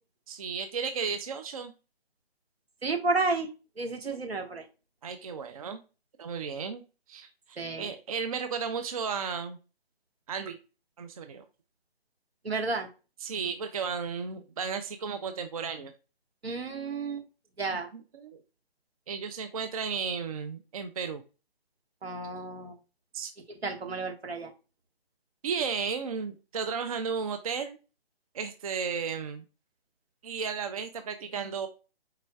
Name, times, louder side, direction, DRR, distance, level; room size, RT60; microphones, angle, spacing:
voice 1, 0.3-1.7 5.0-5.8 6.2-6.8 7.1-9.6 10.3-10.6 11.0-11.4 13.2-15.9 17.9-18.4 19.1-21.2 23.1-23.3 25.4-27.8 28.3-29.4 30.2-31.7, right 6 dB, 35° right, 8 dB, 0.5 m, -34 dB
voice 2, 2.8-3.5 3.8-4.6 7.6-7.9 12.4-12.9 16.4-17.2 17.6-17.9 22.0-22.7 23.6-24.5, right 3 dB, 80° right, 4 dB, 1.6 m, -31 dB
4.9 x 4.3 x 2.3 m, 0.31 s
figure-of-eight pair, 145°, 30 cm